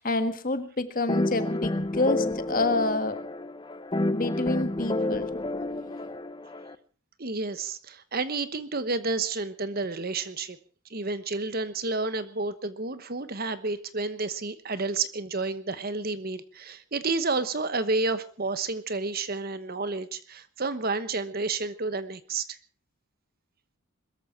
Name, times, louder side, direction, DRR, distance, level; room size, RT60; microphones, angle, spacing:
voice 1, 0.0-3.2 4.1-5.3, left 2 dB, 40° left, 9 dB, 1.6 m, -28 dB
sound 1, 1.1-6.7, left 1 dB, 20° left, 0.7 m, -30 dB
voice 2, 7.2-10.6 10.9-22.6, right 3 dB, 45° right, 13 dB, 1.1 m, -30 dB
22.0 x 14.0 x 4.5 m, 0.39 s
head